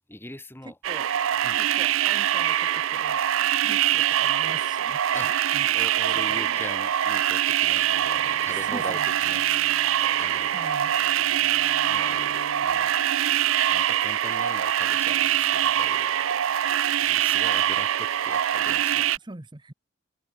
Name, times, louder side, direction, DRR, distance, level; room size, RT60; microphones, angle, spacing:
voice 1, 0.1-0.8 1.4-1.6 5.1-5.3 5.7-9.4 10.2-10.5 11.9-12.9 13.7-16.1 17.0-19.1, left 1 dB, 10° left, 1.6 m, -41 dB
voice 2, 0.6-1.1 1.6-3.2 3.6-5.7 6.1-6.7 8.5-9.1 10.5-10.9 19.2-19.7, right 2 dB, 20° right, 1.0 m, -42 dB
sound 1, 0.8-19.2, right 11 dB, 70° right, 0.5 m, -24 dB
Wind instrument woodwind instrument, 2.7-7.3, left 5 dB, 35° left, 3.8 m, -56 dB
Bowed string instrument, 7.7-13.0, left 3 dB, 75° left, 1.2 m, -46 dB
head